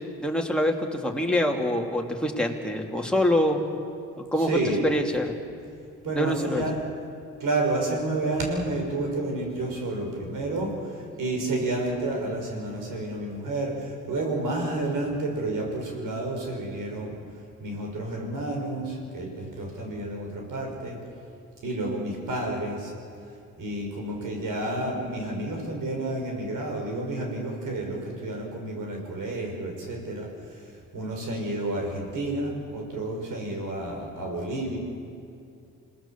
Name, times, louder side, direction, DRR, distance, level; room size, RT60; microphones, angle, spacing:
voice 1, 0.2-3.6 4.2-4.6 4.8-5.3 6.2-6.6, left 1 dB, 5° left, 1 dB, 3.0 m, -25 dB
voice 2, 4.5-4.8 6.0-6.8 7.4-10.8 11.2-17.2 17.6-21.0 21.6-22.9 23.6-30.3 30.9-34.8, right 2 dB, 75° right, 1 dB, 5.8 m, -30 dB
27.5 x 19.0 x 7.3 m, 2.5 s
cardioid pair, 65°, 33 cm